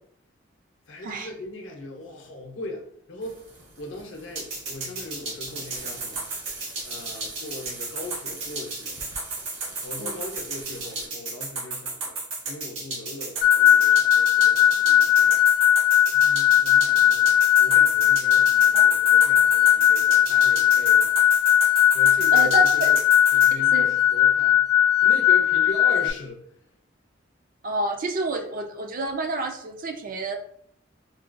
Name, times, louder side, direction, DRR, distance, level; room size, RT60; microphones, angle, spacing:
voice 1, 0.9-3.4 3.8-6.2 6.8-9.1 9.8-12.2 12.5-15.7 16.0-21.4 21.9-23.0 23.3-24.6 25.0-26.4, left 2 dB, 70° left, 2 dB, 0.7 m, -39 dB
sound 1, 3.2-11.1, right 3 dB, 65° right, 0.9 m, -44 dB
sound 2, 4.4-23.5, right 3 dB, 90° right, 1.2 m, -33 dB
sound 3, 13.4-26.1, left 10 dB, 50° left, 0.3 m, -18 dB
voice 2, 22.3-22.9 23.6-23.9 27.6-30.4, right 3 dB, 45° right, 5 dB, 0.4 m, -29 dB
3.8 x 2.2 x 2.5 m, 0.65 s
head